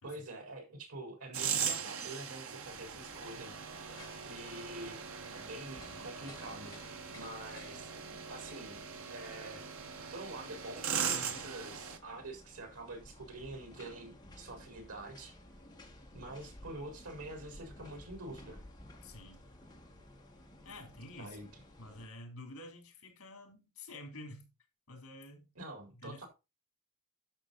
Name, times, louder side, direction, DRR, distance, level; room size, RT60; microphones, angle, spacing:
voice 1, 0.0-3.5 4.2-7.9 8.3-9.6 10.1-15.3 16.1-18.6 21.2-21.6 25.5-26.3, right 2 dB, 90° right, 4.3 m, -46 dB
sound 1, 1.3-12.0, right 7 dB, 65° right, 1.3 m, -40 dB
sound 2, 2.7-22.1, left 1 dB, 20° left, 2.2 m, -55 dB
voice 2, 19.0-19.5 20.6-21.4 21.8-24.5 24.9-25.4 26.0-26.3, left 2 dB, 70° left, 3.7 m, -49 dB
11.5 x 6.2 x 4.1 m
head